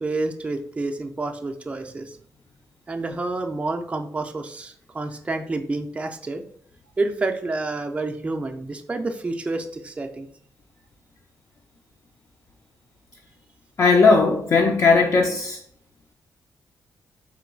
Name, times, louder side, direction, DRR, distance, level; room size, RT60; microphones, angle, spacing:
voice 1, 0.0-2.2 2.9-6.4 7.0-10.3, right 2 dB, 20° right, 4 dB, 0.4 m, -29 dB
voice 2, 13.8-15.6, left 4 dB, 45° left, 1 dB, 0.5 m, -17 dB
3.8 x 2.2 x 4.4 m, 0.62 s
cardioid pair, 115°, 7 cm